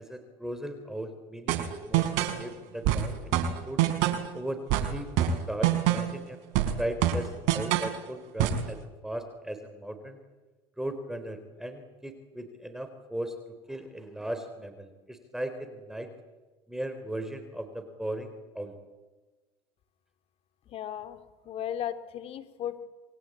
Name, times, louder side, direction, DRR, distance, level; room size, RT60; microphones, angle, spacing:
voice 1, 0.0-1.6 1.9-3.4 3.7-3.8 4.3-4.6 4.9-6.4 6.8-10.2 10.8-13.3 13.7-16.1 16.7-18.8, right 1 dB, 5° right, 7 dB, 3.5 m, -37 dB
sound 1, 1.5-2.4 2.8-4.3 4.7-6.2 6.5-8.0 8.4-8.7, right 10 dB, 65° right, 3.9 m, -26 dB
voice 2, 20.7-21.2 21.5-22.8, left 10 dB, 50° left, 10 dB, 2.7 m, -35 dB
27.5 x 21.5 x 8.7 m, 1.2 s
supercardioid pair, 105°, 13 cm